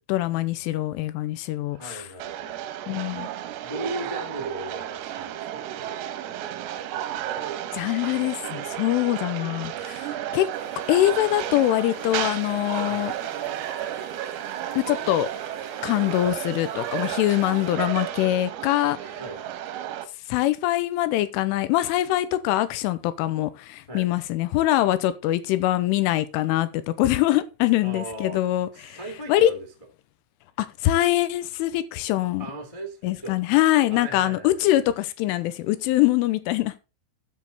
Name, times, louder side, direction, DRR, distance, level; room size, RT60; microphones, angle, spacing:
voice 1, 0.1-2.1 2.9-3.3 7.7-10.5 10.9-13.1 14.8-15.3 15.8-19.2 20.3-29.0 29.3-29.5 30.6-32.5 33.0-36.8, left 14 dB, 85° left, 3.2 m, -23 dB
voice 2, 1.7-2.6 3.5-5.6 12.9-13.0 19.2-19.4 23.9-24.1 27.8-28.4 28.9-29.6 32.4-33.3 33.9-34.6, right 1 dB, 60° left, 0.3 m, -37 dB
sound 1, 2.2-20.1, right 11 dB, 85° right, 3.8 m, -33 dB
sound 2, 10.5-17.7, left 2 dB, 30° left, 2.3 m, -48 dB
13.0 x 6.4 x 4.1 m
omnidirectional pair, 6.0 m